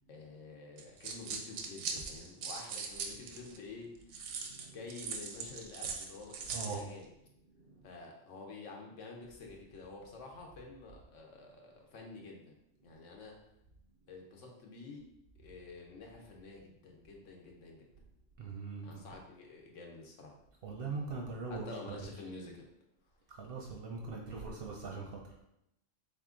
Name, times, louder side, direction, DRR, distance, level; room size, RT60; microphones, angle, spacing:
voice 1, 0.1-4.4 4.7-7.1 7.8-12.4 12.8-13.4 14.1-15.0 15.4-17.9 18.8-20.4 21.5-22.7 24.6-24.8, left 3 dB, 75° left, 1 dB, 1.1 m, -49 dB
sound 1, 0.8-3.6 4.1-6.8, right 5 dB, 90° right, 1.0 m, -40 dB
voice 2, 6.5-6.8 18.4-19.0 20.6-21.7 23.4-25.2, right 4 dB, 60° right, 0 dB, 0.6 m, -41 dB
3.7 x 2.8 x 3.7 m, 0.82 s
omnidirectional pair, 1.3 m